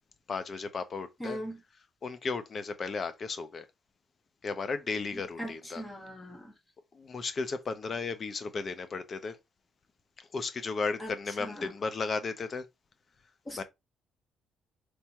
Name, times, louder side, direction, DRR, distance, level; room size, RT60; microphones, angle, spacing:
voice 1, 0.3-1.4 2.0-3.7 4.4-5.8 6.9-9.4 10.2-12.7 13.6-13.7, left 4 dB, 45° left, 0.8 m, -34 dB
voice 2, 1.2-1.6 5.4-6.5 11.0-11.1 11.4-11.7 13.5-13.6, equal, 20° left, 1.5 m, -39 dB
3.4 x 3.0 x 4.5 m
cardioid pair, 90°, 0 cm